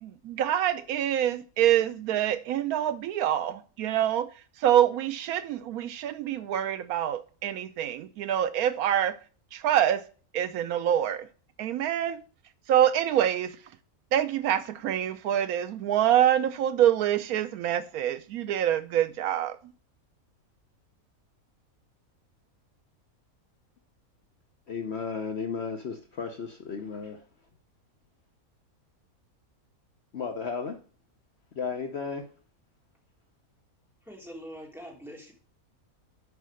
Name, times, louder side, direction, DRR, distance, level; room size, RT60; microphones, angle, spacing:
voice 1, 0.0-4.3 4.6-9.2 9.5-10.0 10.3-11.3 11.6-12.2 12.7-13.6 14.1-19.6, right 11 dB, 80° right, 1.0 m, -26 dB
voice 2, 24.7-27.2 30.1-30.8 31.6-32.3, left 5 dB, 50° left, 1.0 m, -34 dB
voice 3, 34.0-35.3, equal, ahead, 3.2 m, -43 dB
8.2 x 5.5 x 6.3 m
omnidirectional pair, 1.5 m